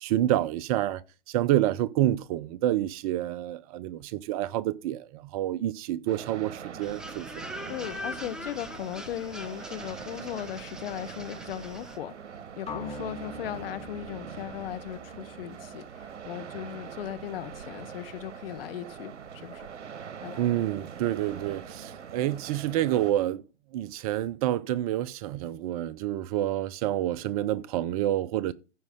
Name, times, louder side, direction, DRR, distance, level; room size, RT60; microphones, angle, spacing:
voice 1, 0.0-7.4 20.4-23.4 23.7-28.5, right 13 dB, 30° right, 0.6 m, -28 dB
sound 1, 6.1-23.1, right 7 dB, 85° right, 1.0 m, -43 dB
sound 2, 6.8-12.0, equal, ahead, 0.9 m, -42 dB
voice 2, 7.7-12.1 12.6-19.7 20.2-20.4, left 11 dB, 55° left, 1.2 m, -37 dB
sound 3, 12.7-16.6, left 4 dB, 20° left, 2.4 m, -44 dB
15.0 x 5.3 x 3.6 m
hypercardioid pair, 130°, 35 cm